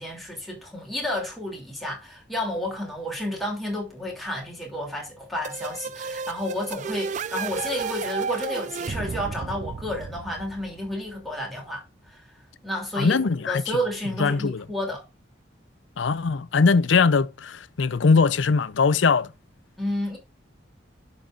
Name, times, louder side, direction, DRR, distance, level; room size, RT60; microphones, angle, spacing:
voice 1, 0.0-12.4 12.6-15.0 19.8-20.2, left 1 dB, ahead, 2.8 m, -31 dB
sound 1, 5.4-11.1, right 5 dB, 40° right, 0.3 m, -33 dB
voice 2, 13.0-13.6 14.2-14.6 16.0-19.3, left 4 dB, 80° left, 0.5 m, -21 dB
11.5 x 5.4 x 2.5 m
head